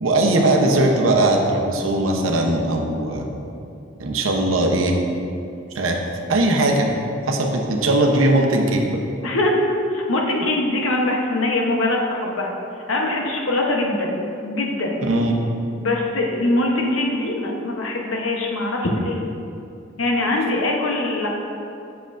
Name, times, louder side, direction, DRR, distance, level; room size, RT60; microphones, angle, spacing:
voice 1, 0.0-3.3 4.0-5.0 5.7-6.0 6.3-6.9 7.3-9.0 15.0-15.3, right 1 dB, 80° right, 1 dB, 0.8 m, -19 dB
voice 2, 9.2-9.6 9.9-12.5 12.9-14.9 15.8-19.2 20.0-21.3, left 2 dB, 75° left, 0 dB, 0.9 m, -22 dB
7.6 x 6.8 x 2.5 m, 2.6 s
head